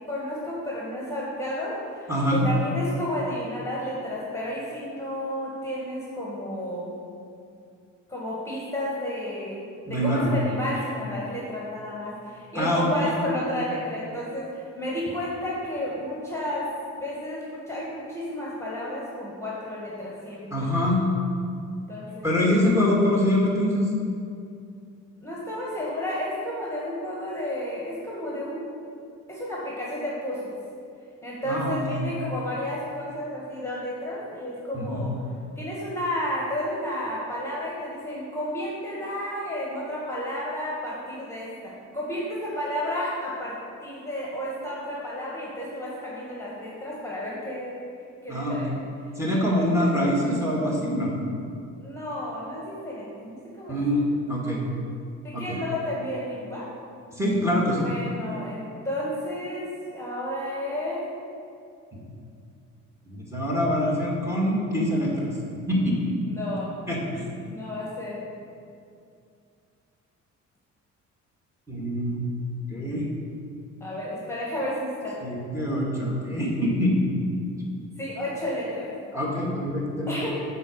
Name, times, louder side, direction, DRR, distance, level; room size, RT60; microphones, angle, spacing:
voice 1, 0.1-7.0 8.1-9.6 9.9-16.6 17.0-20.7 21.9-22.4 25.2-28.7 29.3-30.5 31.2-35.1 35.6-43.6 43.8-47.8 48.2-48.7 49.5-50.1 51.8-53.8 55.2-56.6 57.7-61.0 66.3-66.7 67.5-68.2 73.8-75.2 78.0-78.9 80.1-80.3, left 1 dB, 10° left, -6 dB, 1.8 m, -32 dB
voice 2, 2.1-2.5 9.9-10.3 12.5-13.2 20.5-21.0 22.2-23.9 31.5-32.1 34.7-35.0 48.3-48.6 49.2-51.1 53.7-54.7 55.3-55.6 57.1-57.9 61.9-62.0 63.1-65.3 65.7-66.1 66.9-67.2 71.7-72.2 72.7-73.1 75.2-77.4 79.1-80.1, left 1 dB, 10° right, -3 dB, 2.0 m, -24 dB
7.9 x 4.2 x 6.5 m, 2.4 s
cardioid pair, 90°, 30 cm